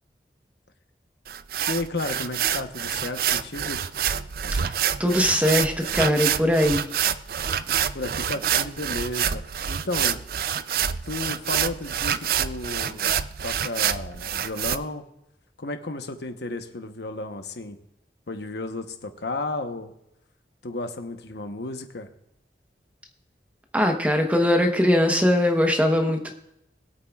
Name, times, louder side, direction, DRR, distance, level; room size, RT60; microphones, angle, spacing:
sound 1, 1.3-14.8, right 9 dB, 55° right, 0.4 m, -27 dB
voice 1, 1.7-3.8 7.9-10.2 11.0-13.1 13.4-15.0 15.6-17.8 18.3-19.9 20.6-22.1, left 2 dB, 75° left, 6 dB, 1.0 m, -33 dB
voice 2, 5.0-6.9 23.7-26.3, left 1 dB, 10° right, 3 dB, 1.0 m, -21 dB
21.5 x 8.5 x 2.4 m, 0.82 s
head